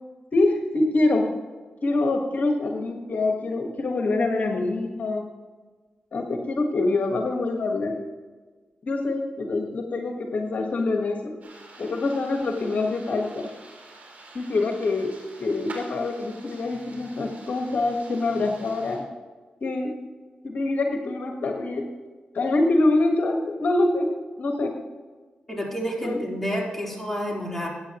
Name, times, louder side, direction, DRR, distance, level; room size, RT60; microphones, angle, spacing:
voice 1, 0.3-1.3 1.8-5.2 6.1-8.0 8.8-11.3 11.8-13.5 14.3-15.1 15.4-19.0 19.6-19.9 20.4-21.8 22.3-24.1 24.4-24.7 26.0-26.2, left 2 dB, 60° left, 2 dB, 1.4 m, -25 dB
sound 1, 11.4-19.0, right 2 dB, 60° right, 3.4 m, -47 dB
voice 2, 25.5-27.7, equal, 10° left, -2 dB, 3.8 m, -29 dB
15.0 x 9.4 x 3.0 m, 1.3 s
cardioid pair, 60°, 3 cm